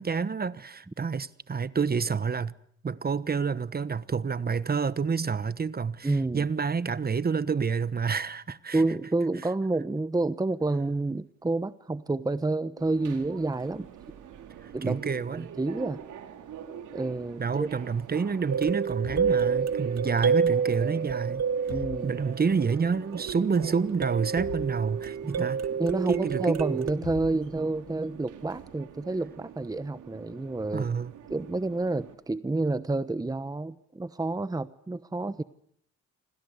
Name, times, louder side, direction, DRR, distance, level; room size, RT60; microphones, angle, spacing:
voice 1, 0.0-2.5 2.8-8.8 14.6-15.5 17.4-21.4 22.0-25.6 26.1-26.6 30.7-31.1, right 5 dB, 30° right, 1.2 m, -28 dB
voice 2, 6.0-6.5 8.7-13.9 14.7-15.0 15.3-16.0 16.9-17.7 21.7-22.1 25.2-25.5 25.8-30.9 31.3-35.4, right 2 dB, 10° right, 1.1 m, -29 dB
Subway metro underground, 12.8-32.1, right 9 dB, 80° right, 4.5 m, -44 dB
sound 1, 18.5-22.8 23.3-26.9, right 6 dB, 60° right, 2.0 m, -29 dB
sound 2, 19.0-20.2 21.7-22.6 24.4-25.5 27.0-28.0, left 11 dB, 80° left, 2.2 m, -43 dB
28.0 x 25.5 x 8.2 m
cardioid pair, 90°, 30 cm